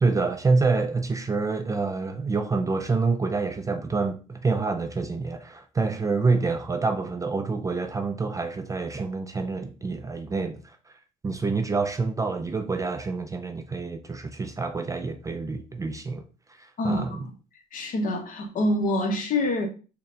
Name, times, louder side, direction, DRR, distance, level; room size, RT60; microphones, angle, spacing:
voice 1, 0.0-10.9 11.2-16.2 16.5-17.2, right 4 dB, 20° right, 0.4 m, -27 dB
voice 2, 16.8-17.3 17.7-19.7, left 1 dB, 55° left, 1.0 m, -26 dB
3.9 x 2.2 x 3.6 m
cardioid pair, 110°, 17 cm